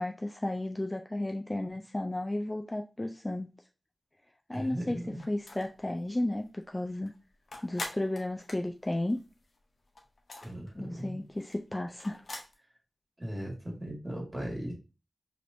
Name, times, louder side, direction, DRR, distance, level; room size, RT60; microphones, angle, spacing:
voice 1, 0.0-3.5 4.5-5.0 5.3-7.1 7.6-9.2 10.7-12.2, left 1 dB, 25° left, 3 dB, 0.4 m, -33 dB
voice 2, 4.5-5.2 10.4-11.2 13.2-14.7, equal, 15° right, -1 dB, 1.7 m, -38 dB
sound 1, 5.2-5.8 6.2-6.3 6.6-9.6 9.9-12.5, left 2 dB, 70° left, 0.9 m, -43 dB
4.9 x 3.0 x 2.6 m, 0.31 s
wide cardioid pair, 65°, 0 cm